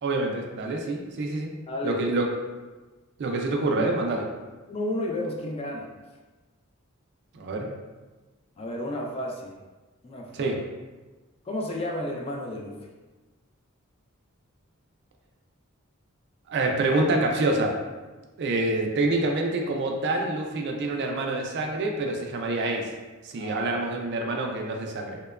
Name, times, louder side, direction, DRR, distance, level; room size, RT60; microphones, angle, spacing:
voice 1, 0.0-1.5 1.8-2.3 3.2-4.2 7.3-7.7 10.3-10.6 16.5-17.8 18.4-22.9 23.2-25.2, right 2 dB, 55° right, 1 dB, 0.3 m, -26 dB
voice 2, 1.7-2.1 3.8-3.9 4.7-5.9 8.6-9.5 10.0-10.5 11.5-12.7 23.4-23.7, left 1 dB, 25° left, -1 dB, 0.3 m, -32 dB
2.8 x 2.2 x 2.3 m, 1.2 s
head